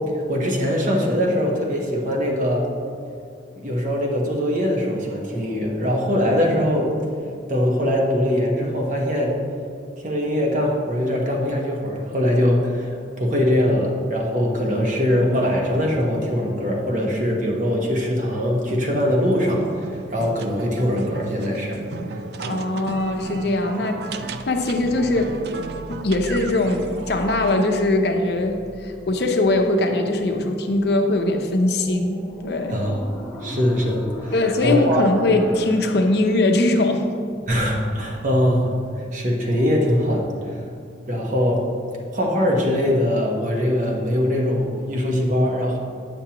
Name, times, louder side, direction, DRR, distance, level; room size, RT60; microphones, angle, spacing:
voice 1, 0.3-2.7 3.6-6.9 7.5-9.4 10.0-21.8 22.4-22.5 32.7-33.1 33.4-34.3 34.6-35.0 37.5-40.6 41.1-41.6 42.1-45.8, equal, 45° right, -1 dB, 1.0 m, -22 dB
sound 1, 18.6-27.7, right 4 dB, 60° right, 0.3 m, -36 dB
voice 2, 22.0-24.1 24.5-25.4 25.9-32.8 34.3-37.4, left 2 dB, 60° left, 4 dB, 0.6 m, -21 dB
sound 2, 22.9-36.0, equal, 10° left, 0.9 m, -39 dB
8.9 x 7.1 x 2.9 m, 2.4 s
head